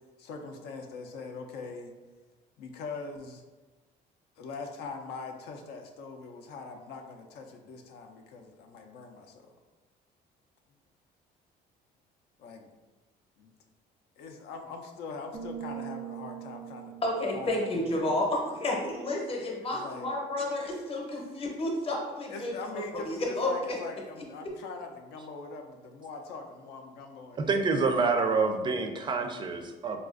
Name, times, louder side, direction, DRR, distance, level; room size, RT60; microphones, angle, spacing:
voice 1, 0.2-1.9 2.6-3.4 4.4-9.5 12.4-12.7 13.4-13.5 14.2-17.0 17.3-18.2 19.6-20.1 22.3-28.0, left 4 dB, 75° left, 3 dB, 0.4 m, -42 dB
sound 1, 15.3-19.0, right 11 dB, 90° right, 0.6 m, -43 dB
voice 2, 17.0-22.5 23.0-23.5, left 1 dB, 35° left, 0 dB, 0.7 m, -31 dB
voice 3, 27.5-30.0, right 4 dB, 25° right, 5 dB, 0.4 m, -27 dB
3.9 x 2.4 x 2.4 m, 1.2 s
cardioid pair, 110°, 17 cm